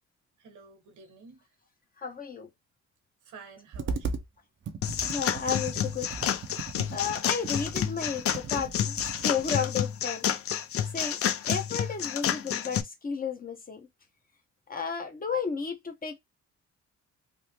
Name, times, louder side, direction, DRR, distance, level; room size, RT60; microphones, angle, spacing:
voice 1, 0.4-1.4 3.2-4.2, right 4 dB, 80° right, 1.3 m, -50 dB
voice 2, 2.0-2.5 5.0-6.1 6.9-10.3 10.9-11.2 11.4-13.9 14.7-16.2, left 6 dB, 30° left, 0.9 m, -33 dB
Computer keyboard, 3.7-4.3 4.7-9.6, right 5 dB, 40° right, 0.6 m, -37 dB
sound 1, 4.8-12.8, left 9 dB, 50° left, 0.5 m, -30 dB
3.4 x 2.0 x 2.8 m
cardioid pair, 90°, 30 cm